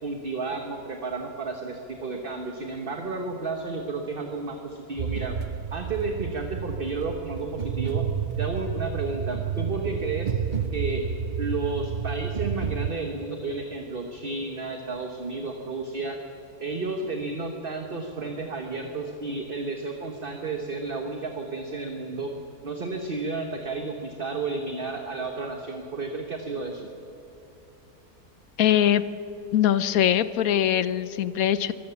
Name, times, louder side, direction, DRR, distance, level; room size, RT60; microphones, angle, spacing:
voice 1, 0.0-5.4 5.7-8.1 8.4-10.3 10.7-11.1 11.4-16.2 16.6-22.3 22.6-26.9, right 3 dB, 40° right, 3 dB, 1.4 m, -32 dB
sound 1, 5.0-12.9, right 7 dB, 55° right, 0.5 m, -30 dB
voice 2, 28.6-29.0 29.5-31.7, left 10 dB, 70° left, 15 dB, 1.1 m, -22 dB
23.5 x 16.0 x 7.1 m, 2.9 s
omnidirectional pair, 1.6 m